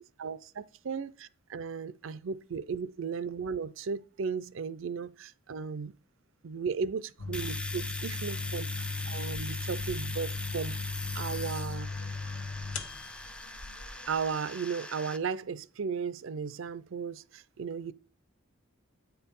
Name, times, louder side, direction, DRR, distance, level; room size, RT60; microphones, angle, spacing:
voice 1, 0.9-5.9 6.4-10.8 11.1-11.9 14.1-17.9, right 5 dB, 70° right, 0.5 m, -35 dB
sound 1, 7.2-14.2, left 4 dB, 80° left, 1.2 m, -37 dB
Domestic sounds home sounds, 7.3-15.2, left 1 dB, 5° left, 0.4 m, -41 dB
9.2 x 4.6 x 5.4 m
head